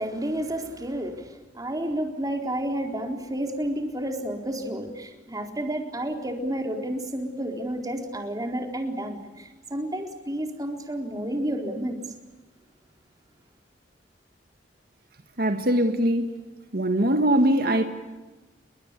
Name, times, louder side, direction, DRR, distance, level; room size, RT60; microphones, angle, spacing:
voice 1, 0.0-12.0, right 1 dB, 20° right, 4.0 m, -31 dB
voice 2, 15.4-16.3 16.7-17.8, right 1 dB, 60° right, 1.8 m, -21 dB
30.0 x 22.0 x 8.3 m
head